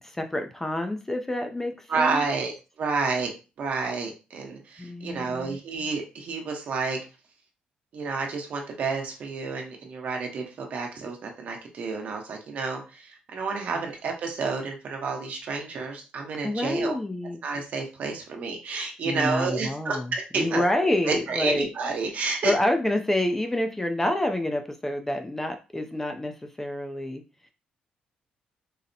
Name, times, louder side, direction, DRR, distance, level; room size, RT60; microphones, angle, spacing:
voice 1, 0.0-2.2 4.8-5.6 13.7-13.8 16.4-17.4 19.1-21.7 22.4-26.3 26.6-27.2, left 1 dB, 10° left, 5 dB, 0.4 m, -28 dB
voice 2, 1.9-3.3 3.6-7.0 7.9-16.9 17.4-22.5, right 4 dB, 60° right, 2 dB, 0.9 m, -30 dB
4.0 x 2.1 x 2.6 m, 0.31 s
cardioid pair, 115°, 3 cm